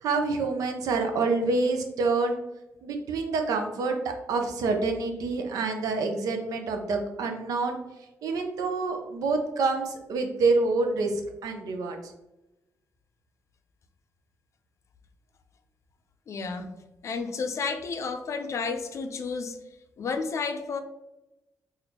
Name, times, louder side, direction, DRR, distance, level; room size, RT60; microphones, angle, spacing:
voice 1, 0.0-2.4 2.8-7.8 8.2-12.0, right 3 dB, 85° right, 4 dB, 0.6 m, -27 dB
voice 2, 16.3-16.7 17.0-19.6 20.0-20.8, left 4 dB, 55° left, 7 dB, 0.4 m, -31 dB
4.2 x 2.5 x 2.8 m, 0.96 s
cardioid pair, 80°, 6 cm